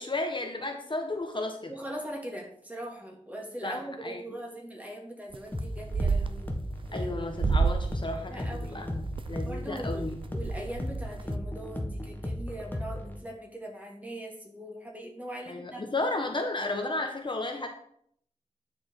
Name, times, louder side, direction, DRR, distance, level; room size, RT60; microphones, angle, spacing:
voice 1, 0.0-1.7 3.6-4.2 6.9-10.2 15.5-17.7, left 2 dB, 40° left, 3 dB, 1.0 m, -33 dB
voice 2, 1.7-6.5 6.9-7.1 8.1-8.9 9.4-10.0 10.3-15.8, right 1 dB, 10° right, 0 dB, 2.1 m, -41 dB
sound 1, 5.3-5.6 5.9-6.9 7.3-8.0 8.4-9.4 9.9-10.0 10.2-11.3, right 4 dB, 40° right, 0.4 m, -29 dB
sound 2, 5.5-13.2, left 1 dB, 15° left, 1.2 m, -35 dB
9.5 x 5.0 x 4.5 m, 0.66 s
wide cardioid pair, 80°, 13 cm